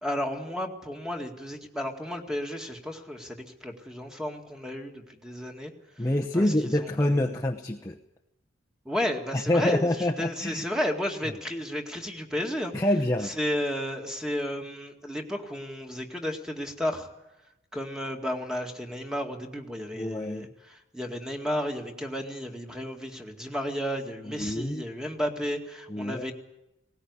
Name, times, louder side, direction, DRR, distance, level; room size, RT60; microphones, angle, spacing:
voice 1, 0.0-5.7 6.3-7.4 8.9-12.7 13.2-17.1 17.7-26.3, equal, 5° right, 3 dB, 2.1 m, -33 dB
voice 2, 6.0-8.0 9.3-10.6 12.7-13.3 19.9-20.5 24.3-24.8 25.9-26.2, left 1 dB, 15° left, 0 dB, 0.9 m, -26 dB
20.0 x 18.5 x 9.6 m, 0.91 s
head